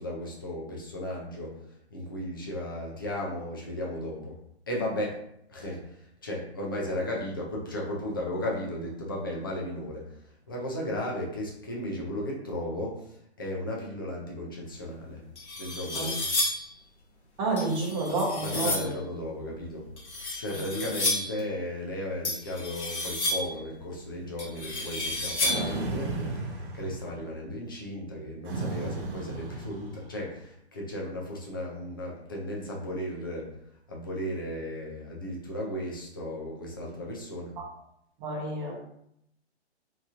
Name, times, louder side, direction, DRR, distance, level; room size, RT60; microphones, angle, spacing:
voice 1, 0.0-4.4 4.7-5.2 5.5-15.2 15.6-16.2 18.4-19.8 20.1-33.5 33.9-37.5, left 1 dB, 20° left, -2 dB, 0.3 m, -35 dB
sound 1, 14.8-14.9 15.4-16.7 17.6-19.0 20.0-21.4 22.2-23.6 24.4-25.8, left 2 dB, 75° left, 1.1 m, -31 dB
voice 2, 17.4-18.9 38.2-38.7, right 2 dB, 20° right, -5 dB, 0.8 m, -29 dB
sound 2, 25.4-27.3 28.5-30.3, right 2 dB, 50° right, 0.6 m, -34 dB
2.9 x 2.6 x 2.4 m, 0.74 s
hypercardioid pair, 140°, 34 cm